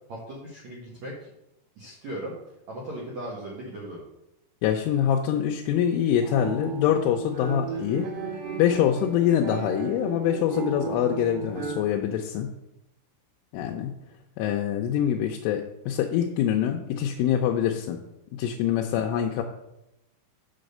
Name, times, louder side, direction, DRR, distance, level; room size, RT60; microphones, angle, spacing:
voice 1, 0.1-1.3 1.7-2.3 2.7-4.0 18.9-19.0, right 1 dB, 80° right, -3 dB, 1.6 m, -38 dB
voice 2, 4.6-8.1 8.6-12.5 13.5-13.9 14.4-18.0 18.4-19.4, left 10 dB, 85° left, 2 dB, 3.1 m, -25 dB
sound 1, 6.1-11.9, right 6 dB, 55° right, 1.9 m, -34 dB
7.7 x 5.1 x 6.5 m, 0.87 s
omnidirectional pair, 5.7 m